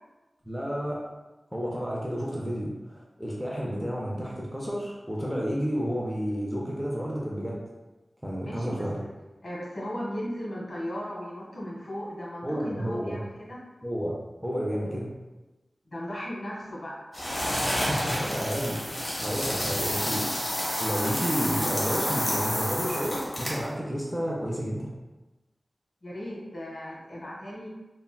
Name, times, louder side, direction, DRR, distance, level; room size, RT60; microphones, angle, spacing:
voice 1, 0.4-1.0 1.5-7.6 8.2-9.0 12.4-13.2 13.8-14.1 14.4-15.1 17.6-18.9 19.2-24.9, equal, 5° right, -4 dB, 0.5 m, -31 dB
voice 2, 8.5-9.1 9.4-13.6 15.9-17.0 26.0-27.7, equal, 55° left, -5 dB, 1.3 m, -36 dB
sound 1, 17.1-23.7, equal, 35° left, 0.9 m, -29 dB
3.6 x 2.1 x 2.3 m, 1.1 s
wide cardioid pair, 70°, 0 cm